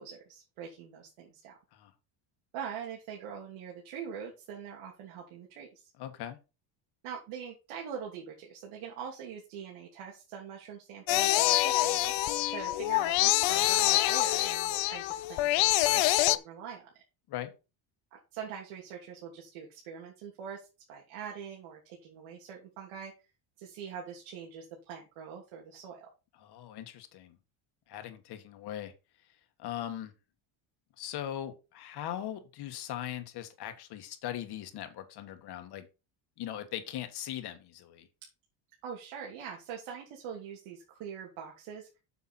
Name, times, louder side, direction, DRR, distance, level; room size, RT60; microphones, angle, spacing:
voice 1, 0.0-1.6 2.5-5.9 7.0-12.1 12.5-16.0 16.3-16.9 18.1-23.1 23.6-26.1 38.8-41.9, right 7 dB, 90° right, -1 dB, 3.0 m, -43 dB
voice 2, 6.0-6.4 17.3-17.5 26.3-27.4 27.9-28.9 29.6-30.1 31.0-35.9 36.4-38.1, left 11 dB, 50° left, 7 dB, 1.8 m, -40 dB
sound 1, 11.1-16.4, left 16 dB, 65° left, 0.8 m, -26 dB
8.4 x 7.1 x 4.4 m, 0.29 s
cardioid pair, 175°, 48 cm